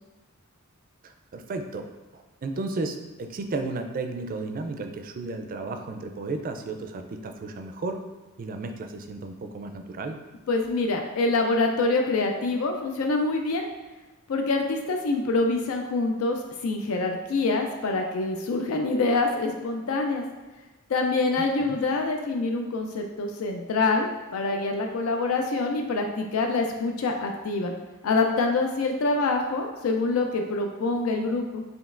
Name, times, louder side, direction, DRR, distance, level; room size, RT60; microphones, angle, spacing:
voice 1, 1.0-1.8 2.1-8.0 8.4-10.2 21.6-21.8, right 3 dB, 45° right, 6 dB, 0.4 m, -33 dB
voice 2, 10.5-13.7 14.3-20.2 20.9-27.7 28.0-31.6, left 3 dB, 85° left, 3 dB, 0.4 m, -25 dB
5.0 x 3.1 x 2.5 m, 1.2 s
head